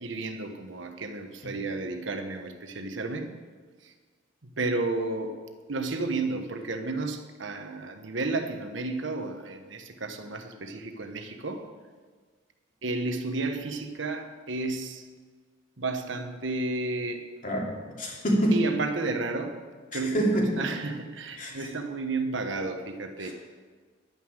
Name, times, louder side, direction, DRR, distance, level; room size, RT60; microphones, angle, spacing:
voice 1, 0.0-3.3 3.8-3.9 4.4-5.4 5.7-11.7 12.8-15.1 15.8-17.3 18.5-19.6 19.9-20.3 20.6-23.3, right 3 dB, 70° right, 6 dB, 1.2 m, -32 dB
voice 2, 17.4-18.6 19.9-20.5 21.4-21.7 23.2-23.3, right 1 dB, 40° left, -2 dB, 2.8 m, -27 dB
11.0 x 9.5 x 6.5 m, 1.5 s
head